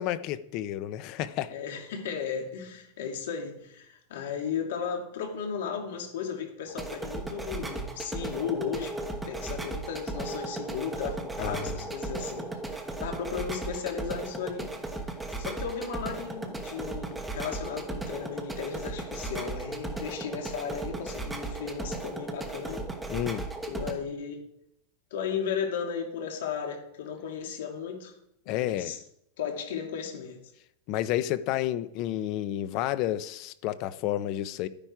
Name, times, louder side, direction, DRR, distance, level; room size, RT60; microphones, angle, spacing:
voice 1, 0.0-1.5 11.4-11.7 23.1-23.5 28.5-28.9 30.9-34.7, left 13 dB, 35° left, 0.6 m, -30 dB
voice 2, 1.5-9.0 9.2-14.7 15.4-22.8 23.6-24.4 25.1-28.1 28.5-29.0 29.4-30.4, left 7 dB, 70° left, 2.9 m, -35 dB
sound 1, 6.7-23.9, right 2 dB, 5° right, 1.1 m, -36 dB
12.0 x 10.0 x 4.7 m
supercardioid pair, 175°, 0 cm